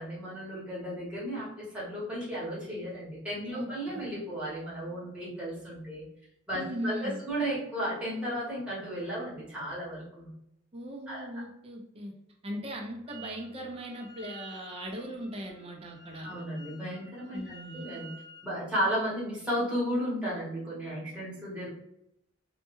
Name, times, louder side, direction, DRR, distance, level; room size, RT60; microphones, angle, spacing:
voice 1, 0.0-6.1 6.5-10.3 11.1-11.4 16.2-18.1 18.4-21.7, equal, 5° right, -8 dB, 1.0 m, -34 dB
voice 2, 3.5-4.1 6.5-7.2 10.7-12.1 12.4-16.3 17.3-17.8, equal, 30° right, 1 dB, 0.5 m, -39 dB
Wind instrument woodwind instrument, 13.1-13.5 13.7-18.5, right 3 dB, 70° left, 0.8 m, -51 dB
2.2 x 2.2 x 3.0 m, 0.79 s
head